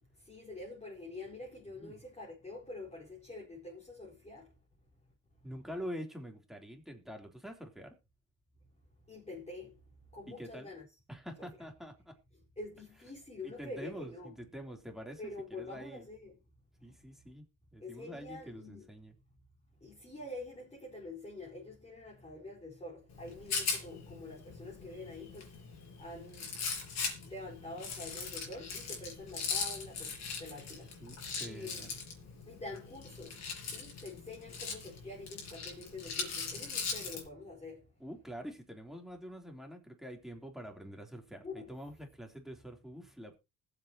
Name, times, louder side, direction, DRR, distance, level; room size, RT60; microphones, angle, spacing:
voice 1, 0.2-4.5 9.1-9.8 10.1-10.9 11.4-11.5 12.6-14.3 15.2-16.3 17.8-18.9 19.8-25.5 26.0-26.5 27.2-30.1 30.4-30.9 31.4-31.9 32.5-33.4 33.7-37.9 41.4-41.7, left 2 dB, 20° left, 4.6 m, -46 dB
voice 2, 5.4-7.9 10.3-10.7 11.1-12.2 13.4-16.0 16.8-17.4 17.7-19.1 31.0-31.9 38.0-43.4, equal, ahead, 3.5 m, -46 dB
Rattle, 23.1-37.2, left 5 dB, 60° left, 5.3 m, -40 dB
20.5 x 8.2 x 3.0 m
cardioid pair, 90°, 30 cm